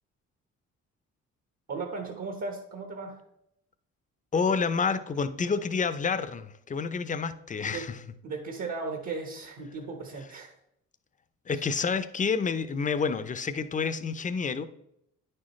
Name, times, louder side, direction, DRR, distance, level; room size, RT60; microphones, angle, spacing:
voice 1, 1.7-3.2 7.6-7.9 8.2-10.5, right 4 dB, 60° right, 3 dB, 1.3 m, -36 dB
voice 2, 4.3-8.0 11.5-14.7, left 5 dB, 25° left, 12 dB, 0.6 m, -29 dB
9.4 x 6.4 x 3.1 m, 0.78 s
cardioid pair, 90°, 30 cm